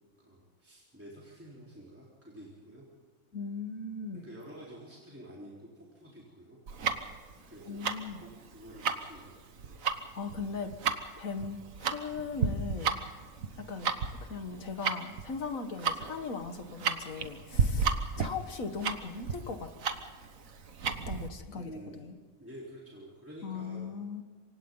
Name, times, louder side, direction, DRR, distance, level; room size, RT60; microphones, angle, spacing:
voice 1, 0.2-2.8 4.2-6.6 7.5-7.8 8.2-9.8 21.6-22.0 22.4-23.9, equal, 10° right, -6 dB, 4.1 m, -49 dB
voice 2, 3.3-4.3 7.7-8.2 10.1-10.7 11.2-12.9 13.6-13.9 14.2-19.7 21.1-21.7 22.0-22.1 23.4-24.2, left 4 dB, 80° left, 7 dB, 2.0 m, -38 dB
Tick-tock, 6.7-21.3, right 5 dB, 75° right, 1.7 m, -33 dB
27.5 x 25.0 x 4.0 m, 1.5 s
omnidirectional pair, 1.4 m